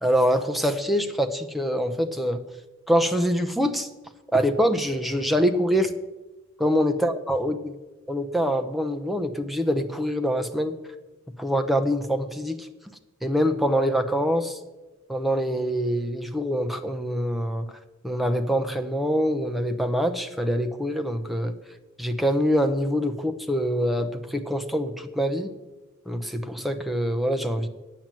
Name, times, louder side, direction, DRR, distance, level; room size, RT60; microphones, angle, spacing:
voice 1, 0.0-2.4 2.9-3.9 4.3-5.9 6.6-7.6 8.1-10.7 11.4-12.7 13.2-14.6 15.1-17.7 18.0-21.5 22.0-25.5 26.1-27.7, equal, ahead, 6 dB, 0.7 m, -24 dB
9.3 x 8.7 x 7.5 m, 1.1 s
head